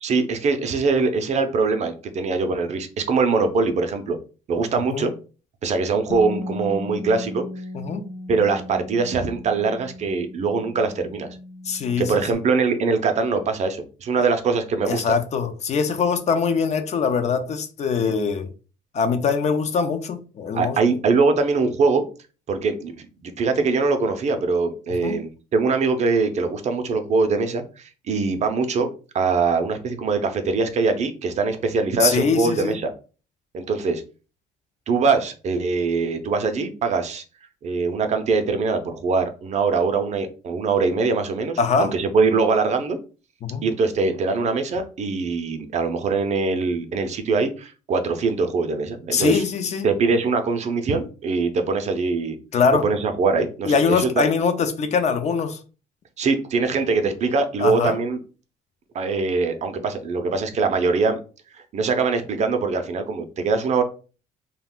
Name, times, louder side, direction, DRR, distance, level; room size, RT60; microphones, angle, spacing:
voice 1, 0.0-4.2 4.5-5.1 5.6-7.4 8.3-11.3 12.0-15.1 18.0-18.1 20.5-22.0 22.5-22.9 23.2-32.9 33.5-34.0 34.9-37.2 37.6-43.0 43.6-49.4 49.8-52.4 52.8-54.1 56.2-58.2 58.9-61.2 61.7-63.8, right 4 dB, 45° right, 0.5 m, -22 dB
voice 2, 4.7-5.1 7.7-8.0 11.7-12.1 14.9-18.5 18.9-20.8 25.0-25.2 32.0-32.8 41.6-41.9 43.4-43.6 49.1-49.9 52.5-52.9 53.6-55.6 57.6-58.0, left 5 dB, 40° left, 0.4 m, -22 dB
Bass guitar, 6.1-12.3, left 1 dB, 90° left, 0.6 m, -36 dB
2.3 x 2.2 x 3.5 m
cardioid pair, 110°, 17 cm